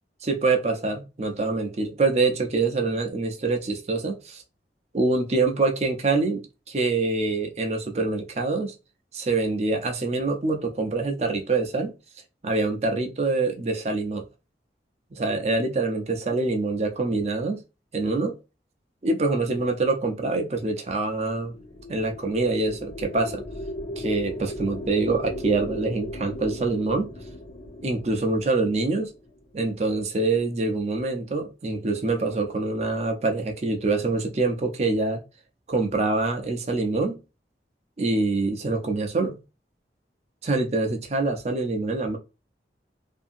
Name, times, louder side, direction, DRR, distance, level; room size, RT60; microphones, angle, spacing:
voice 1, 0.2-4.4 4.9-8.7 9.1-11.9 12.4-14.3 15.1-17.6 17.9-18.4 19.0-21.5 21.9-23.4 24.0-27.1 27.8-29.1 29.5-35.2 35.7-37.2 38.0-39.4 40.4-42.2, right 3 dB, 35° right, 0.5 m, -25 dB
sound 1, 21.4-29.8, left 1 dB, 65° left, 1.1 m, -38 dB
2.7 x 2.6 x 2.5 m
head